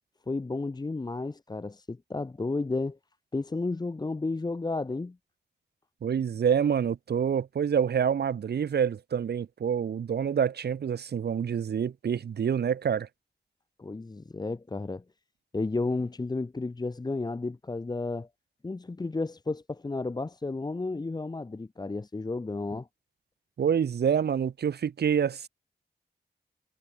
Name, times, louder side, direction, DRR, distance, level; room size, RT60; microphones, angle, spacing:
voice 1, 0.3-3.0 3.3-5.2 13.8-15.0 15.5-18.3 18.6-22.9, left 3 dB, 25° left, 1.3 m, -32 dB
voice 2, 6.0-13.1 23.6-25.5, right 8 dB, 75° right, 1.0 m, -27 dB
wide cardioid pair, 145°, 17 cm